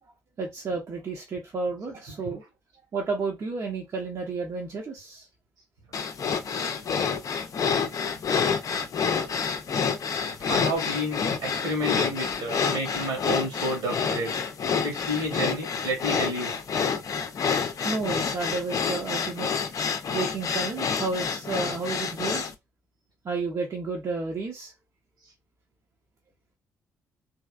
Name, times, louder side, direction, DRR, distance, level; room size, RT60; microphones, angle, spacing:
voice 1, 0.4-2.4 2.9-5.3 17.8-19.5 20.1-22.4 23.2-24.7, right 4 dB, 45° right, 0.8 m, -31 dB
sound 1, 5.9-22.5, left 6 dB, 45° left, 0.5 m, -28 dB
voice 2, 10.4-14.3 14.8-16.5, equal, 70° right, 1.5 m, -30 dB
3.1 x 2.8 x 2.4 m
figure-of-eight pair, 40°, 8 cm